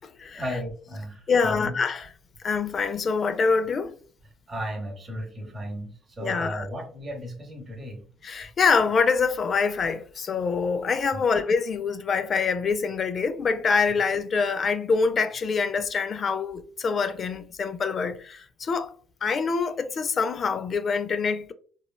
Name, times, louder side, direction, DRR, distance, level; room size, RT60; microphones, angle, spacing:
voice 1, 0.3-1.8 4.5-8.0 11.1-11.2, equal, 25° right, 0.8 m, -35 dB
voice 2, 1.3-2.1 2.4-3.9 6.2-6.7 8.2-21.5, left 5 dB, 35° left, 0.3 m, -25 dB
3.0 x 2.2 x 2.2 m
cardioid pair, 120°, 0 cm